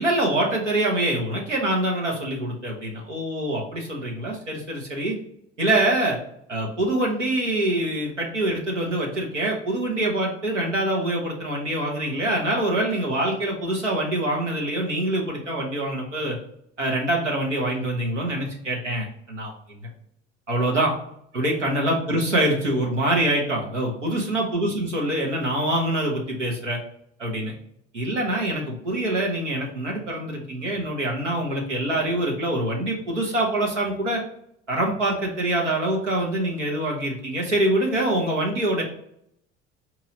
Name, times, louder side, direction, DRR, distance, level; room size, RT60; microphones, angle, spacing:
voice 1, 0.0-5.2 5.6-6.2 6.5-16.4 16.8-19.8 20.5-20.9 21.3-26.8 27.2-27.5 27.9-34.2 34.7-38.8, right 1 dB, 90° right, -2 dB, 1.2 m, -25 dB
4.5 x 3.0 x 3.8 m, 0.69 s
figure-of-eight pair, 65°, 36 cm